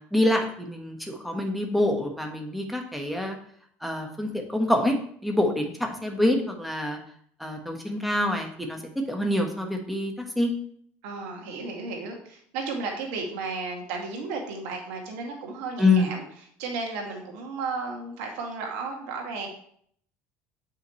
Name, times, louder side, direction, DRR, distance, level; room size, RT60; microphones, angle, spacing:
voice 1, 0.1-3.4 3.8-5.0 5.2-7.0 7.4-10.5 15.8-16.1, left 1 dB, ahead, 2 dB, 1.4 m, -26 dB
voice 2, 11.0-16.2 16.6-19.5, right 4 dB, 85° right, 1 dB, 2.0 m, -34 dB
8.3 x 5.8 x 3.2 m, 0.62 s
cardioid pair, 125°, 5 cm